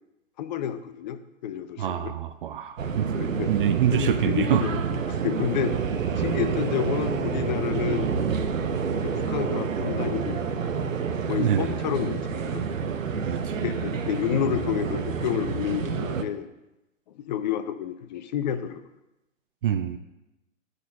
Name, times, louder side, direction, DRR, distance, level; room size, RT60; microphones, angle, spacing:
voice 1, 0.4-2.1 3.2-4.8 5.2-5.8 6.2-8.1 9.0-10.9 11.3-12.6 13.6-16.5 17.2-18.8, left 9 dB, 35° left, 11 dB, 0.5 m, -30 dB
voice 2, 1.8-3.1 3.5-4.6 6.1-6.3 11.4-11.7 13.3-13.7 19.6-20.0, right 9 dB, 45° right, 10 dB, 0.5 m, -26 dB
sound 1, 2.8-16.2, right 6 dB, 80° right, 0.8 m, -28 dB
9.3 x 3.9 x 6.3 m, 0.97 s
figure-of-eight pair, 120°, 39 cm